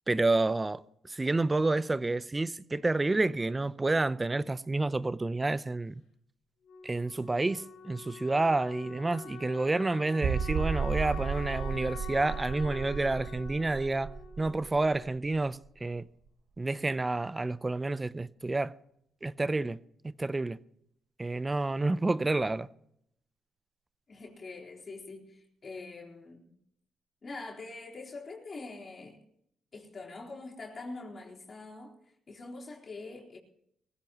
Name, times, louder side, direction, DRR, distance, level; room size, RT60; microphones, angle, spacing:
voice 1, 0.1-5.9 6.8-14.1 14.4-16.1 16.6-18.8 19.2-19.8 20.0-20.6 21.2-22.7, right 2 dB, 20° right, 0.6 m, -29 dB
Wind instrument woodwind instrument, 6.6-15.3, left 5 dB, 85° left, 4.1 m, -46 dB
sound 1, 10.2-15.7 16.0-16.1 16.6-16.7, right 6 dB, 60° right, 0.9 m, -34 dB
voice 2, 24.1-26.6 27.2-29.2 29.7-33.4, left 3 dB, 40° left, 3.9 m, -44 dB
22.5 x 15.5 x 3.0 m
cardioid pair, 90°, 0 cm